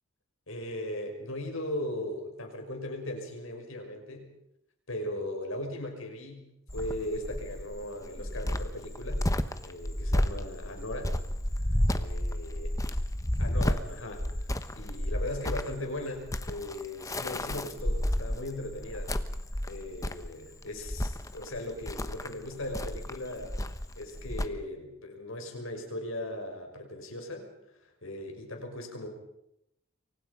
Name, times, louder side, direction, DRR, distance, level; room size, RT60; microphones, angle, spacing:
voice 1, 0.5-4.3 4.9-6.5 6.7-9.3 9.6-11.2 11.9-12.7 13.4-19.1 19.7-23.6 24.0-27.5 28.0-29.1, left 1 dB, 70° left, 3 dB, 6.0 m, -38 dB
Cricket, 6.7-24.5, left 1 dB, 15° left, 1.1 m, -32 dB
28.5 x 24.0 x 5.4 m, 0.80 s
head